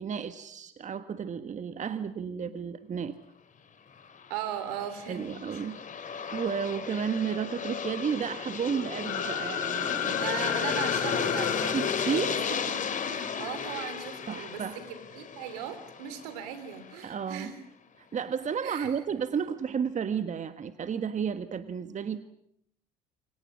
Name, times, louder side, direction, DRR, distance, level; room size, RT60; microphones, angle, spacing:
voice 1, 0.0-3.1 5.1-5.8 6.1-10.2 11.7-12.4 14.3-14.8 17.0-17.5 18.1-22.2, right 7 dB, 35° right, 10 dB, 1.5 m, -32 dB
Aircraft, 4.1-16.9, left 6 dB, 40° left, 3.2 m, -34 dB
voice 2, 4.3-5.6 10.1-11.8 12.3-12.4 12.9-17.6 18.6-19.0, right 9 dB, 75° right, 12 dB, 3.4 m, -38 dB
sound 1, 9.0-12.8, left 8 dB, 65° left, 6.4 m, -34 dB
28.5 x 26.0 x 6.3 m, 0.73 s
hypercardioid pair, 60°, 20 cm